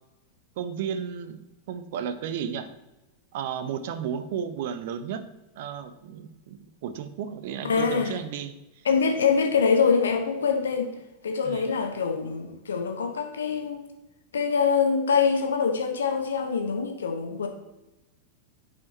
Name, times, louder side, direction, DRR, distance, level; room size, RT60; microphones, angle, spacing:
voice 1, 0.6-1.4 1.7-2.7 3.3-5.2 5.6-8.5 11.4-11.8, right 8 dB, 50° right, 12 dB, 0.6 m, -33 dB
voice 2, 7.6-8.2 8.8-10.9 11.2-13.8 14.3-17.5, left 5 dB, 65° left, 4 dB, 1.1 m, -24 dB
8.3 x 5.0 x 4.2 m, 1.0 s
figure-of-eight pair, 90°, 0 cm